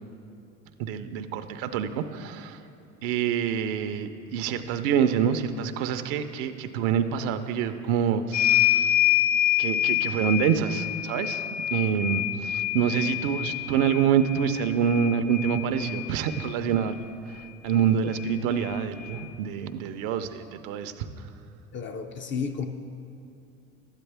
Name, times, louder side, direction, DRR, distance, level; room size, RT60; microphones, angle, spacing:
voice 1, 0.8-2.7 3.0-9.0 9.6-21.3, right 8 dB, 65° right, 9 dB, 0.7 m, -27 dB
sound 1, 8.3-16.4 17.7-17.8 18.1-19.2, left 12 dB, 75° left, 1.5 m, -27 dB
voice 2, 21.7-22.7, left 6 dB, 30° left, 6 dB, 0.5 m, -32 dB
12.0 x 9.1 x 3.4 m, 2.7 s
supercardioid pair, 100°, 43 cm